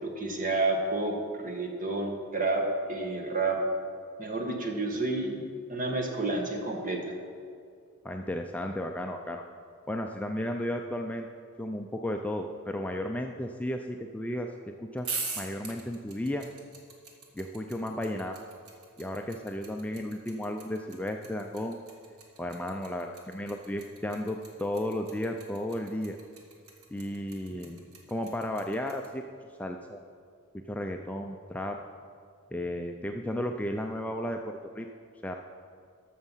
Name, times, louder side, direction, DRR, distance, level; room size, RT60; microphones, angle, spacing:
voice 1, 0.0-1.2 1.4-3.6 4.2-5.4 5.7-7.2 27.5-27.6, right 2 dB, 40° right, 3 dB, 1.3 m, -30 dB
voice 2, 8.0-9.4 9.9-11.3 11.6-15.1 15.4-16.5 17.3-18.4 19.0-21.8 22.4-26.2 26.9-27.8 28.1-29.2 29.6-30.0 30.5-31.8 32.5-34.9 35.2-35.3, left 1 dB, 5° left, 3 dB, 0.4 m, -34 dB
sound 1, 15.0-29.1, right 4 dB, 85° right, 1.6 m, -41 dB
13.0 x 6.6 x 5.6 m, 2.2 s
head